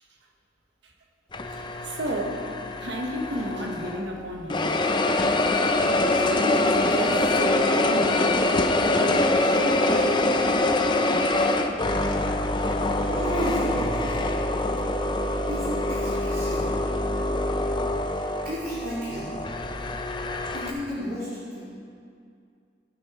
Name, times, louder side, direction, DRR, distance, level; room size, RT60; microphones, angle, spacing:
sound 1, 1.3-4.1 4.5-20.7, left 2 dB, 25° left, 0.6 m, -24 dB
voice 1, 1.6-2.4 2.8-4.9 6.2-8.5 8.9-10.3, equal, 75° right, 2 dB, 1.3 m, -32 dB
voice 2, 13.1-14.3 15.5-16.7 18.4-19.3 20.5-21.6, equal, 55° right, -10 dB, 3.2 m, -32 dB
17.0 x 6.6 x 4.8 m, 2.3 s
head